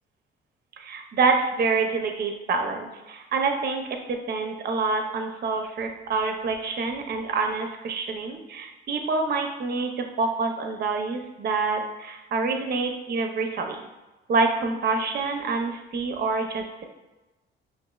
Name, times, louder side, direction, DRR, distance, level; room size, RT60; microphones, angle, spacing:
voice 1, 0.8-13.8 14.3-16.8, right 4 dB, 55° right, 4 dB, 0.6 m, -27 dB
5.9 x 2.5 x 2.3 m, 1.1 s
cardioid pair, 90°, 20 cm